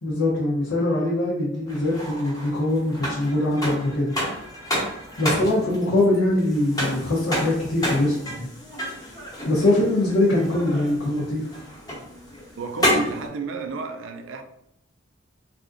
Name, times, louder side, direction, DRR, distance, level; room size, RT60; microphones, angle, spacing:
voice 1, 0.0-4.1 5.2-8.5 9.5-11.6, left 1 dB, 80° left, 0.7 m, -22 dB
sound 1, 1.7-13.3, equal, 20° left, 0.9 m, -30 dB
voice 2, 5.2-5.5 12.6-14.4, right 3 dB, 70° right, 0.4 m, -32 dB
3.4 x 2.5 x 2.5 m
head